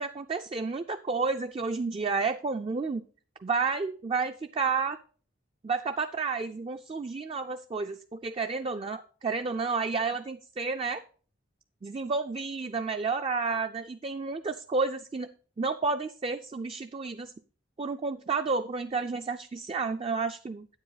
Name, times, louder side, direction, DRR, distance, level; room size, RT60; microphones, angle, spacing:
voice 1, 0.0-3.0 3.4-5.0 5.6-11.0 11.8-15.3 15.6-17.3 17.8-20.7, right 4 dB, 30° right, 7 dB, 0.3 m, -31 dB
9.2 x 7.9 x 3.9 m, 0.41 s
head